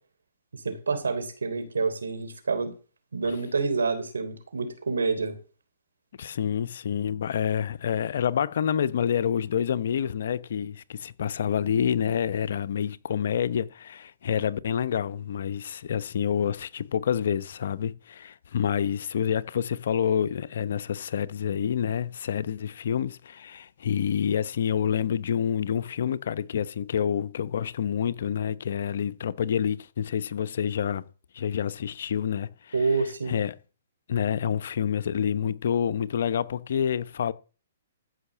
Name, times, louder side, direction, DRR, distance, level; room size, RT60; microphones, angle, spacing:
voice 1, 0.5-2.7 3.1-5.4 32.7-33.4, right 4 dB, 85° right, 3.4 m, -28 dB
voice 2, 6.2-31.0 31.3-32.7 33.3-33.5 34.1-37.3, left 8 dB, 65° left, 0.8 m, -28 dB
14.0 x 5.8 x 7.3 m
hypercardioid pair, 135°, 0 cm